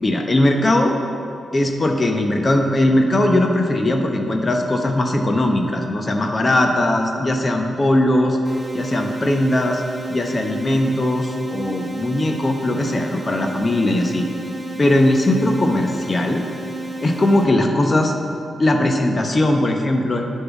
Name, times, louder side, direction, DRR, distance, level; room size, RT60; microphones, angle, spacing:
voice 1, 0.0-1.0 1.5-8.4 8.7-9.8 10.1-14.2 14.8-16.4 17.0-18.1 18.6-20.3, left 1 dB, 35° left, 3 dB, 0.8 m, -19 dB
sound 1, 8.4-17.4, right 2 dB, 10° right, 1.4 m, -31 dB
6.8 x 5.6 x 7.1 m, 2.5 s
cardioid pair, 55°, 0 cm